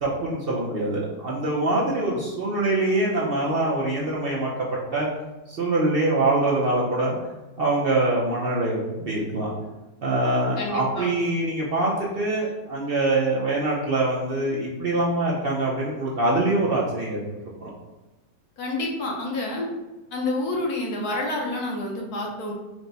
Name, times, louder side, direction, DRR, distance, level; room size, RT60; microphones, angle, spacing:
voice 1, 0.0-4.5 4.9-5.1 5.5-7.1 7.6-9.5 10.0-17.7, right 2 dB, 50° right, -5 dB, 0.7 m, -24 dB
voice 2, 10.6-11.1 18.6-19.7 20.1-22.5, left 2 dB, 80° left, -1 dB, 1.4 m, -28 dB
4.7 x 2.1 x 3.9 m, 1.1 s
omnidirectional pair, 1.6 m